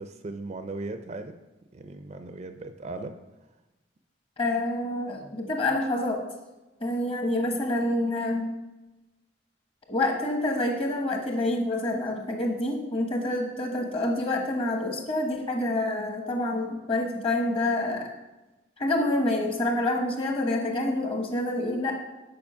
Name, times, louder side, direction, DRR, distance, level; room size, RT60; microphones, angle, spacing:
voice 1, 0.0-1.4 1.7-3.2, right 2 dB, 35° right, 8 dB, 0.4 m, -37 dB
voice 2, 4.4-6.2 6.8-8.5 9.9-18.1 18.8-22.0, left 1 dB, 30° left, 2 dB, 1.1 m, -27 dB
7.0 x 5.2 x 5.5 m, 1.1 s
head